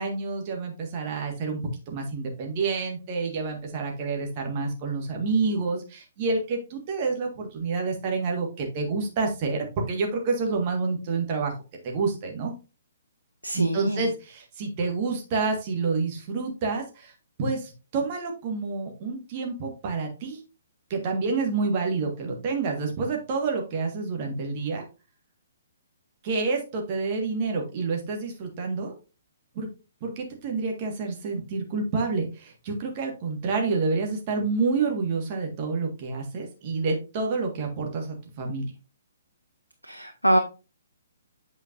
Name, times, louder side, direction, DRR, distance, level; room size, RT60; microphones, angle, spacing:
voice 1, 0.0-1.6 1.9-11.5 11.8-12.5 13.5-17.1 17.4-20.4 20.9-24.8 26.2-28.9 29.5-29.7 30.0-38.6, right 4 dB, 35° right, 2 dB, 1.7 m, -28 dB
voice 2, 13.4-14.1 39.8-40.4, equal, 85° left, 5 dB, 0.8 m, -24 dB
8.3 x 5.1 x 2.6 m, 0.31 s
figure-of-eight pair, 125°, 0 cm